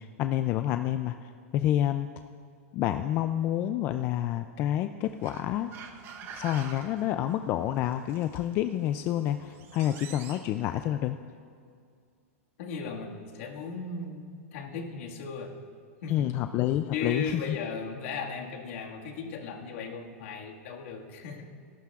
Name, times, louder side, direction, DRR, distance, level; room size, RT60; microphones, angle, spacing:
voice 1, 0.0-2.1 2.7-5.7 6.3-11.2 16.1-17.6, left 12 dB, 30° left, 9 dB, 0.3 m, -28 dB
sound 1, 5.0-10.5, right 6 dB, 30° right, 0.9 m, -47 dB
voice 2, 12.6-15.6 16.0-16.3 16.9-21.5, left 5 dB, 60° left, 0 dB, 1.8 m, -37 dB
30.0 x 11.5 x 2.4 m, 2.2 s
supercardioid pair, 155°, 8 cm